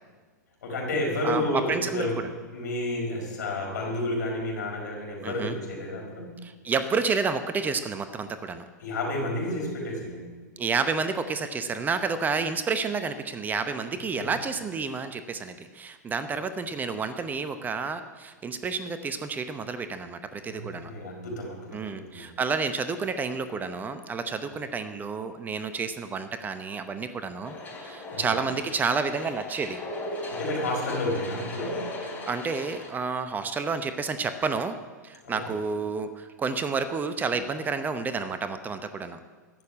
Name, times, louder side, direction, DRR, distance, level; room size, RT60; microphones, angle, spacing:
voice 1, 0.6-6.4 8.8-10.3 14.1-14.4 20.4-22.3 28.1-28.3 30.3-31.9 35.2-35.5, left 1 dB, 70° left, 0 dB, 5.0 m, -31 dB
voice 2, 1.2-2.1 5.2-5.5 6.4-8.6 10.6-20.9 21.7-29.8 32.2-34.8 35.0-39.2, right 5 dB, 20° right, 10 dB, 0.8 m, -30 dB
sound 1, 27.4-32.9, left 1 dB, 15° left, 3.4 m, -37 dB
14.5 x 6.7 x 9.6 m, 1.4 s
hypercardioid pair, 110°, 10 cm